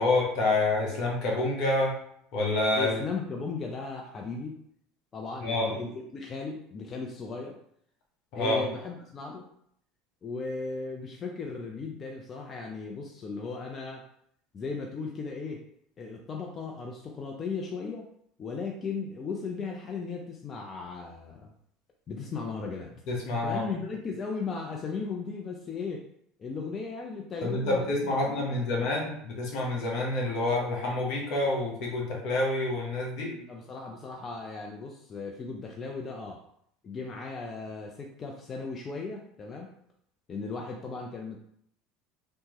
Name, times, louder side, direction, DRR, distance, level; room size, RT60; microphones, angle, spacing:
voice 1, 0.0-2.0 2.3-2.9 5.4-5.7 8.3-8.6 23.1-23.6 27.4-33.3, left 2 dB, 60° left, -2 dB, 1.2 m, -27 dB
voice 2, 2.8-4.6 5.1-7.6 8.3-9.5 10.2-14.1 14.5-15.7 16.0-18.1 18.4-21.5 22.1-22.9 23.4-26.1 26.4-28.9 33.2-36.4 36.8-39.7 40.3-41.4, left 4 dB, 35° left, 1 dB, 0.5 m, -36 dB
3.3 x 2.9 x 3.0 m, 0.69 s
hypercardioid pair, 80°, 0 cm